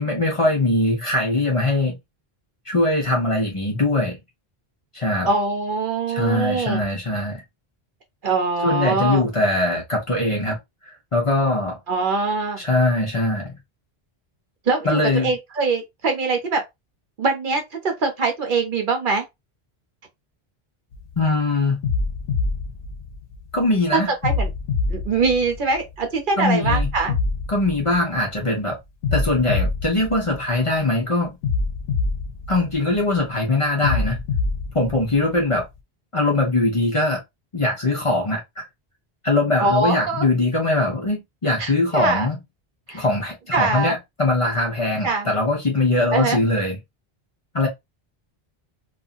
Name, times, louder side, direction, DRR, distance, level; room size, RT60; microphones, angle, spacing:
voice 1, 0.0-2.0 2.7-4.2 4.9-5.3 6.1-7.4 8.6-10.6 11.1-11.8 12.6-13.5 14.8-15.3 21.2-21.8 23.5-24.1 26.4-26.9 27.5-28.8 29.1-31.4 32.5-34.2 34.7-35.6 36.1-37.2 37.5-38.6 39.2-42.4 42.9-46.8 47.5-47.7, left 2 dB, 35° left, 0.7 m, -21 dB
voice 2, 5.2-6.8 8.2-9.2 11.9-12.6 14.7-16.6 17.2-19.2 23.9-24.5 24.9-27.2 39.6-40.2 41.6-42.3 42.9-43.0 43.5-44.0 45.0-45.3 46.1-46.4, right 4 dB, 55° right, 0.8 m, -23 dB
sound 1, 20.9-21.2 21.8-23.6 24.2-26.0 26.6-28.4 29.0-30.8 31.4-33.2 33.8-35.6, left 4 dB, 80° left, 0.9 m, -25 dB
2.6 x 2.4 x 2.4 m
omnidirectional pair, 1.1 m